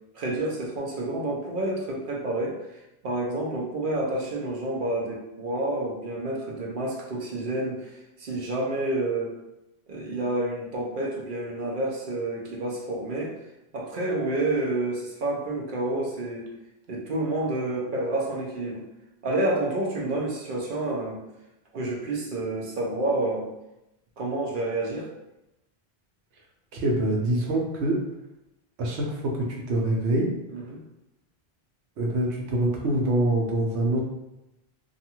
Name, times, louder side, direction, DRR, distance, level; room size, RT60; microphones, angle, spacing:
voice 1, 0.1-2.6 3.0-9.3 9.9-13.3 13.7-16.5 16.9-18.8 19.2-21.2 21.7-23.5 24.2-25.1 30.5-30.8, right 2 dB, 55° right, -2 dB, 0.7 m, -29 dB
voice 2, 26.7-28.0 28.8-30.3 32.0-34.0, right 1 dB, 80° right, -1 dB, 0.9 m, -25 dB
2.6 x 2.3 x 2.8 m, 0.92 s
omnidirectional pair, 1.1 m